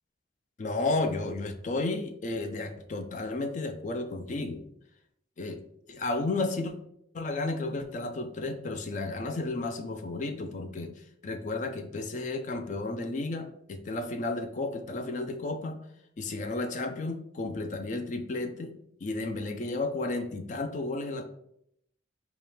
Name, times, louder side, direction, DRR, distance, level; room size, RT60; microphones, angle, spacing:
voice 1, 0.6-4.6 5.4-5.6 5.9-6.7 7.1-15.8 16.2-18.8 19.0-21.3, left 2 dB, 40° left, 6 dB, 0.4 m, -33 dB
4.0 x 2.3 x 3.4 m, 0.73 s
head